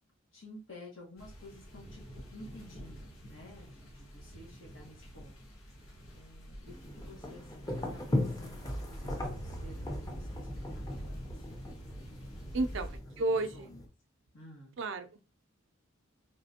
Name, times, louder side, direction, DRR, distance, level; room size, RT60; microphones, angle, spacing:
voice 1, 0.3-2.0 2.3-5.4 5.6-5.8 6.1-11.4 12.6-12.8 13.1-13.2 13.5-13.8 14.3-14.8, left 1 dB, 70° left, -2 dB, 1.5 m, -53 dB
sound 1, 1.2-13.0, equal, 90° left, 1.6 m, -46 dB
sound 2, 6.7-13.8, left 1 dB, 20° left, 0.7 m, -38 dB
voice 2, 12.5-12.9 13.2-13.7 14.8-15.2, right 2 dB, 65° right, 9 dB, 0.5 m, -32 dB
4.2 x 3.2 x 2.7 m, 0.31 s
head